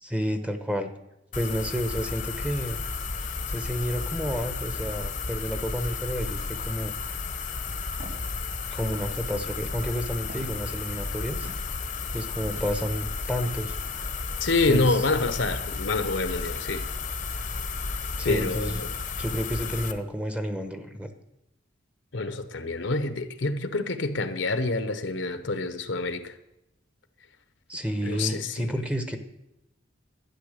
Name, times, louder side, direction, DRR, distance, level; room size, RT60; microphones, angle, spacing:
voice 1, 0.0-0.9 1.3-2.8 3.5-6.9 8.7-11.5 12.1-13.8 14.7-15.0 18.2-18.8 19.2-21.1 27.7-29.2, equal, 5° right, 1.0 m, -30 dB
sound 1, 1.3-19.9, left 4 dB, 40° left, 0.9 m, -33 dB
Walk footsteps, 8.0-8.3 8.9-9.3 10.3-10.6 11.4-11.7 12.5-13.0, equal, 90° right, 4.6 m, -45 dB
voice 2, 14.4-16.8 18.2-18.9 22.1-26.3 28.0-28.7, left 3 dB, 70° left, 1.0 m, -27 dB
12.0 x 9.8 x 6.6 m
head